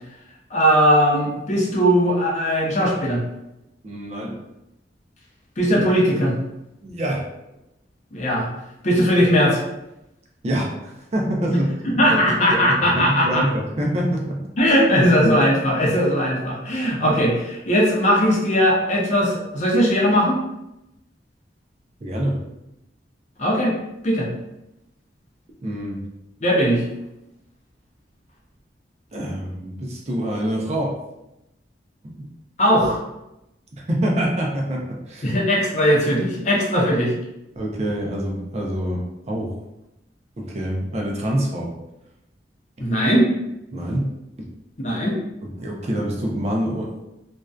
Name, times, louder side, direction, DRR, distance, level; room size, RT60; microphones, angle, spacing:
voice 1, 0.5-3.2 5.6-6.3 8.1-8.5 8.8-9.6 11.5-11.6 11.8-13.4 14.6-20.4 23.4-23.7 24.0-24.3 26.4-26.8 32.6-33.0 35.2-37.1 42.8-43.3 44.8-45.2, equal, 40° left, -3 dB, 0.6 m, -19 dB
voice 2, 3.8-4.4 6.8-7.2 10.4-12.0 12.5-14.5 22.0-22.4 25.6-26.0 29.1-30.9 32.0-32.3 33.9-35.3 37.6-39.0 39.3-39.5 40.4-41.7 43.7-44.1 45.4-47.0, right 1 dB, 40° right, -1 dB, 0.4 m, -26 dB
2.5 x 2.2 x 2.3 m, 0.89 s
head